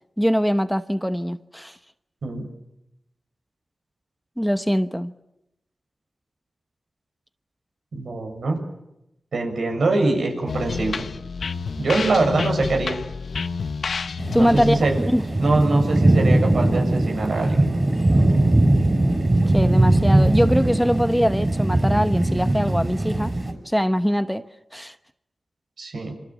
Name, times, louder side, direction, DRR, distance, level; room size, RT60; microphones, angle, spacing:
voice 1, 0.2-1.8 4.4-5.1 14.3-14.9 15.1-15.2 19.5-23.3 23.6-24.4 24.7-24.9, equal, ahead, 1.1 m, -22 dB
voice 2, 7.9-8.7 9.3-11.1 11.8-13.0 14.3-15.0 15.4-17.7 25.8-26.1, right 3 dB, 80° right, 7.4 m, -23 dB
sound 1, 10.5-16.1, left 5 dB, 75° left, 1.0 m, -30 dB
sound 2, 14.2-23.5, right 1 dB, 30° right, 6.0 m, -20 dB
27.5 x 25.0 x 7.5 m
cardioid pair, 55°, 0 cm